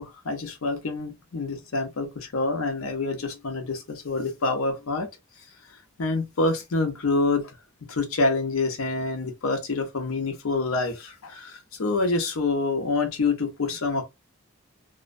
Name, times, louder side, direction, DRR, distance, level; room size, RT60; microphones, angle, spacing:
voice 1, 0.0-5.1 6.0-7.5 7.9-14.0, left 3 dB, 90° left, 0.6 m, -27 dB
2.5 x 2.1 x 2.5 m
head